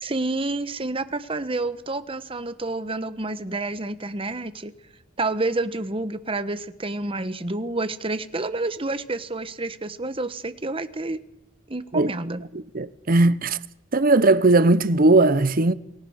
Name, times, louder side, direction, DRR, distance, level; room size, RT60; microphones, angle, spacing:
voice 1, 0.0-4.7 5.2-11.2 11.7-12.4, right 2 dB, 25° right, 1.2 m, -29 dB
voice 2, 12.7-13.6 13.9-15.7, right 2 dB, 45° right, 0.9 m, -18 dB
28.5 x 19.5 x 6.5 m
head